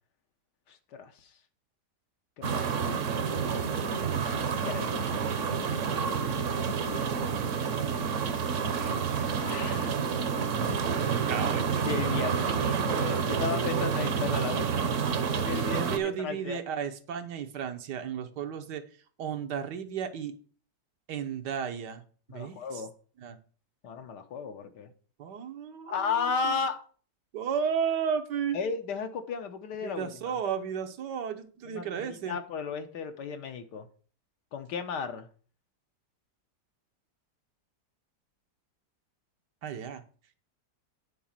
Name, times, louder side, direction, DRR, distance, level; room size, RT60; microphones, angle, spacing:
voice 1, 0.7-1.1 2.4-2.9 4.6-5.0 5.5-6.1 9.4-10.0 11.9-14.9 15.3-16.6 22.3-22.9 23.8-24.9 25.9-26.8 28.5-30.3 31.7-33.9 34.5-35.3, left 6 dB, 75° left, 1.5 m, -35 dB
sound 1, 2.4-16.0, right 6 dB, 55° right, 1.1 m, -29 dB
voice 2, 8.7-9.5 11.0-11.9 15.7-18.8 19.2-20.3 21.1-22.0 22.3-22.9 23.2-23.4 25.2-26.5 27.3-28.6 29.8-32.4 39.6-40.0, right 7 dB, 75° right, 1.5 m, -34 dB
9.0 x 4.1 x 7.2 m
omnidirectional pair, 1.8 m